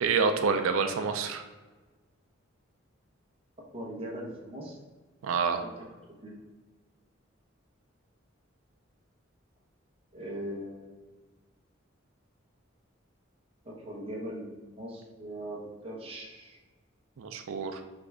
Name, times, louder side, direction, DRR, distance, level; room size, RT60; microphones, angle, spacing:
voice 1, 0.0-1.4 5.2-5.6 17.2-17.8, right 5 dB, 85° right, 6 dB, 0.4 m, -27 dB
voice 2, 3.7-4.8 5.6-5.7 6.2-6.4 10.1-11.0 13.6-16.6, right 1 dB, 30° right, -2 dB, 0.9 m, -40 dB
3.9 x 3.2 x 3.5 m, 1.3 s
head